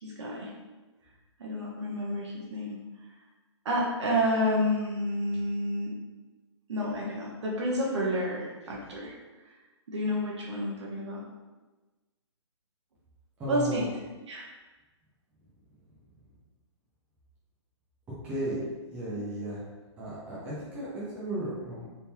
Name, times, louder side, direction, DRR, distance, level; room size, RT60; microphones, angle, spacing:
voice 1, 0.0-0.5 1.4-2.8 3.6-6.0 6.7-9.1 9.9-11.2 13.5-13.8 14.3-14.4, equal, 70° right, -3 dB, 1.1 m, -30 dB
voice 2, 13.4-13.8 18.2-19.6 20.0-21.9, right 1 dB, 10° right, -10 dB, 0.6 m, -35 dB
3.7 x 2.8 x 2.8 m, 1.2 s
hypercardioid pair, 165°, 15 cm